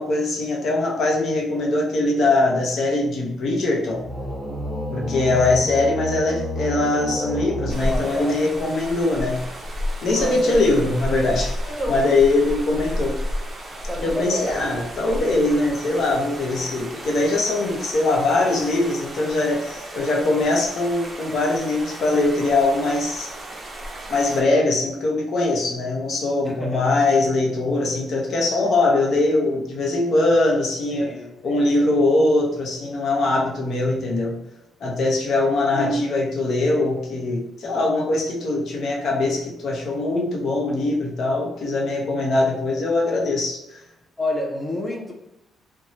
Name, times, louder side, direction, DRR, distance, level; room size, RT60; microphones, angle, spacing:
voice 1, 0.0-4.0 4.9-9.4 10.0-11.6 11.9-13.2 13.9-23.3 24.1-31.1 31.4-34.4 34.8-43.8, left 2 dB, 65° left, -1 dB, 0.7 m, -22 dB
sound 1, 3.9-8.6, left 1 dB, 35° left, 1.4 m, -30 dB
sound 2, 7.7-24.4, equal, 30° right, 0.6 m, -33 dB
voice 2, 7.9-8.5 10.2-10.6 11.7-12.0 13.9-14.7 26.5-26.8 30.9-31.9 44.2-45.1, left 1 dB, 10° left, 0 dB, 0.5 m, -30 dB
2.7 x 2.2 x 2.9 m, 0.89 s
cardioid pair, 90°, 0 cm